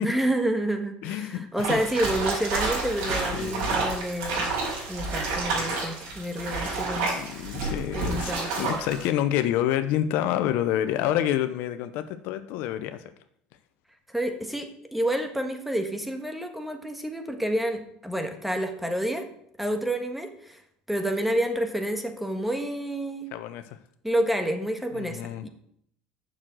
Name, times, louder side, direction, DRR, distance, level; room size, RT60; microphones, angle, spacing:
voice 1, 0.0-4.5 4.9-7.2 7.9-8.5 14.1-19.3 19.6-20.6 20.9-23.3 24.0-25.5, right 1 dB, 5° right, 5 dB, 1.5 m, -29 dB
voice 2, 1.0-1.8 3.0-3.8 7.1-13.1 23.3-23.8 24.9-25.4, left 11 dB, 75° left, 11 dB, 0.7 m, -28 dB
sound 1, 1.6-9.0, right 3 dB, 80° right, 4.9 m, -29 dB
7.4 x 6.3 x 7.5 m, 0.70 s
supercardioid pair, 105°, 3 cm